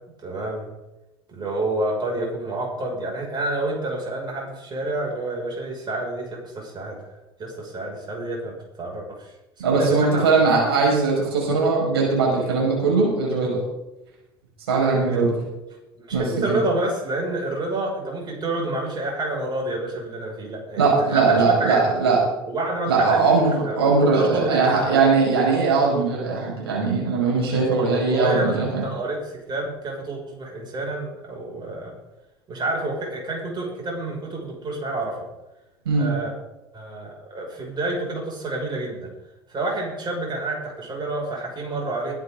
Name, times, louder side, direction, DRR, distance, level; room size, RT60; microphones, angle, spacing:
voice 1, 0.2-0.7 1.3-7.1 7.4-9.3 9.7-10.3 15.0-15.3 16.0-21.8 22.5-24.9 27.9-31.9 32.5-35.2 36.0-36.3 36.7-39.1 39.5-42.1, right 2 dB, 35° right, -1 dB, 6.4 m, -29 dB
voice 2, 9.6-13.6 14.7-15.3 16.1-16.6 20.8-22.2 22.9-28.8 35.8-36.1, right 4 dB, 80° right, -3 dB, 5.9 m, -20 dB
21.5 x 10.0 x 4.0 m, 0.98 s
hypercardioid pair, 70°, 13 cm